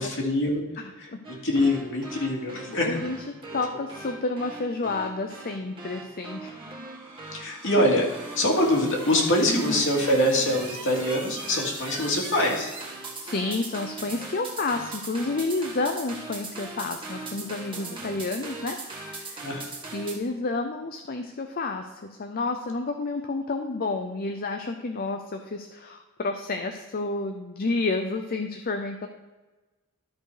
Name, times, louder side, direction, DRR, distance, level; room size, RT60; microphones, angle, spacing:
voice 1, 0.0-0.6 1.3-3.0 7.3-8.1 8.4-12.7 19.4-19.7, left 1 dB, 60° left, -1 dB, 2.4 m, -24 dB
voice 2, 0.8-1.2 2.7-6.5 9.5-9.9 13.1-19.4 19.9-29.1, left 3 dB, 45° left, 5 dB, 0.6 m, -30 dB
sound 1, 1.2-20.2, right 3 dB, 25° right, 2.2 m, -39 dB
13.0 x 4.5 x 5.0 m, 1.2 s
head